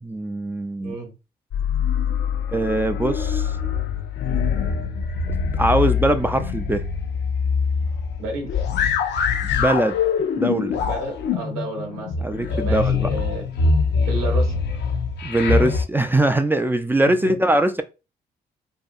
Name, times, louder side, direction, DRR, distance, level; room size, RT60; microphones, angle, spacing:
voice 1, 0.0-0.9 2.5-3.5 5.5-6.9 9.5-10.0 10.4-10.8 12.2-13.1 15.2-17.8, right 1 dB, 10° right, 0.3 m, -21 dB
voice 2, 0.8-1.1 8.2-8.6 10.8-13.4 14.0-14.6 17.0-17.4, right 2 dB, 85° right, 0.8 m, -31 dB
sound 1, 1.5-15.8, left 5 dB, 60° left, 0.5 m, -23 dB
2.7 x 2.2 x 2.5 m
hypercardioid pair, 50°, 20 cm